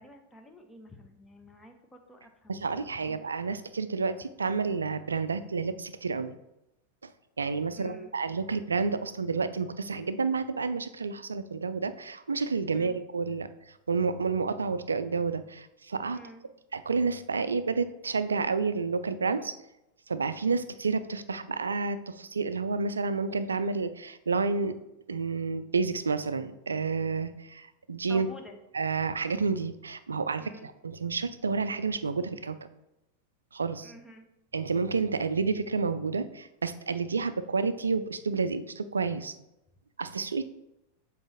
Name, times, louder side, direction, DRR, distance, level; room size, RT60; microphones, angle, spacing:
voice 1, 0.0-2.6 3.0-3.2 7.8-8.1 12.7-13.0 16.1-16.4 28.1-28.6 30.4-30.7 33.8-34.3, equal, 10° left, 4 dB, 0.8 m, -50 dB
voice 2, 2.5-6.3 7.0-7.1 7.4-13.5 13.9-16.2 16.7-19.5 20.1-24.7 25.1-28.3 28.7-32.6 33.5-33.9 34.5-39.3 40.0-40.4, right 4 dB, 75° right, 12 dB, 0.4 m, -30 dB
7.2 x 4.1 x 3.4 m, 0.90 s
figure-of-eight pair, 90°, 0 cm